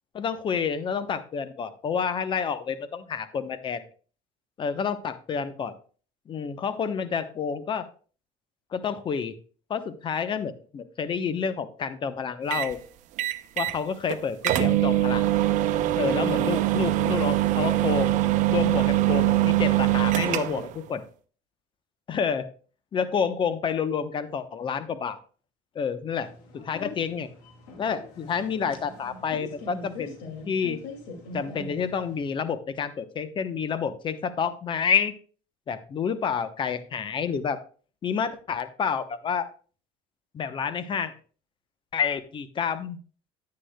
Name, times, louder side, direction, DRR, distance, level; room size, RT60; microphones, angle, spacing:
voice 1, 0.1-3.8 4.6-5.7 6.3-7.9 8.7-9.4 9.7-12.8 13.6-15.3 16.0-18.1 18.5-21.0 22.1-22.5 22.9-25.2 25.7-27.3 27.8-30.2 30.4-30.8 31.3-35.1 35.7-37.6 38.0-39.5 40.3-41.1 41.9-43.0, left 6 dB, 35° left, 12 dB, 0.9 m, -29 dB
sound 1, 12.5-12.7 13.2-13.8 14.1-14.2 14.4-20.7, right 15 dB, 60° right, 0.8 m, -23 dB
sound 2, 26.2-32.3, left 2 dB, 85° left, 2.4 m, -43 dB
10.0 x 9.7 x 2.3 m, 0.40 s
supercardioid pair, 110°, 14 cm